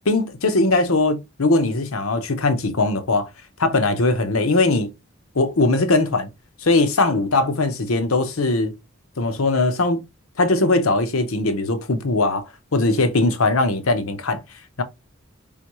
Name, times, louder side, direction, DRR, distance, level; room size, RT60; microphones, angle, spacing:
voice 1, 0.1-3.3 3.6-4.9 5.3-6.3 6.6-8.7 9.2-10.0 10.4-14.4 14.8-14.9, left 2 dB, 80° left, 0.9 m, -20 dB
4.0 x 3.9 x 3.0 m
head